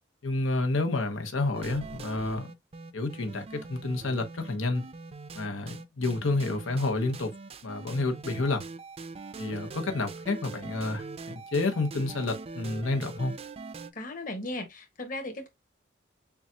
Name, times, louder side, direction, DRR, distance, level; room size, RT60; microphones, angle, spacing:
voice 1, 0.2-2.5 2.9-4.9 5.3-7.3 7.6-8.6 9.4-13.3, left 2 dB, 90° left, 0.9 m, -29 dB
sound 1, 1.5-13.9, right 4 dB, 30° right, 0.4 m, -42 dB
voice 2, 13.9-15.5, left 2 dB, 45° left, 1.4 m, -36 dB
7.0 x 2.4 x 2.8 m
head